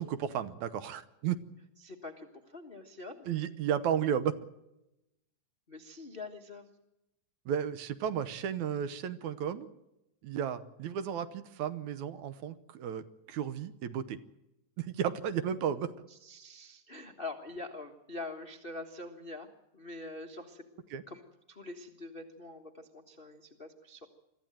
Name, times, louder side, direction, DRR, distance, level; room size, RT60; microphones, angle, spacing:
voice 1, 0.0-1.4 3.3-4.3 7.5-9.7 10.2-14.2 14.8-15.9 20.9-21.0, right 9 dB, 70° right, 12 dB, 2.2 m, -33 dB
voice 2, 1.8-3.3 5.7-6.7 16.1-24.1, left 2 dB, 55° left, 4 dB, 0.5 m, -45 dB
24.0 x 14.0 x 9.1 m, 0.91 s
omnidirectional pair, 3.7 m